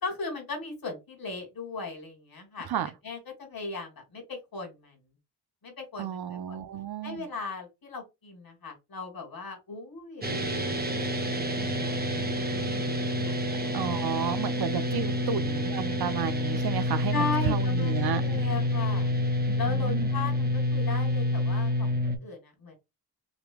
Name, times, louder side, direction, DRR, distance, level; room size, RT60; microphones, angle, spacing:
voice 1, 0.0-2.7 3.0-5.0 5.6-6.6 7.0-10.5 10.8-10.9 11.6-13.4 13.6-13.7 14.2-14.4 17.1-19.1 19.6-22.7, left 4 dB, 60° left, 2.8 m, -37 dB
voice 2, 6.0-7.3 13.7-18.2 19.5-20.1, right 8 dB, 65° right, 0.8 m, -32 dB
sound 1, 10.2-22.2, left 1 dB, 25° right, 1.4 m, -28 dB
5.3 x 3.0 x 2.3 m
supercardioid pair, 45°, 41 cm